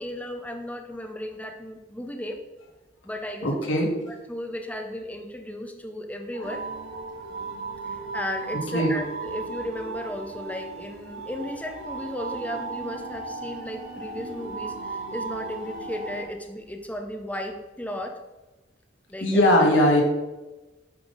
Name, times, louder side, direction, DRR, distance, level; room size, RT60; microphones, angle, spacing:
voice 1, 0.0-2.4 3.0-3.8 4.1-6.7 7.8-18.2 19.1-19.4, left 1 dB, 10° left, 4 dB, 0.5 m, -35 dB
voice 2, 3.4-3.9 6.3-6.5 8.7-9.0 19.2-20.0, left 1 dB, 90° left, -1 dB, 1.9 m, -20 dB
sound 1, 6.4-16.2, right 3 dB, 90° right, 2.7 m, -36 dB
8.1 x 5.4 x 3.9 m, 1.1 s
head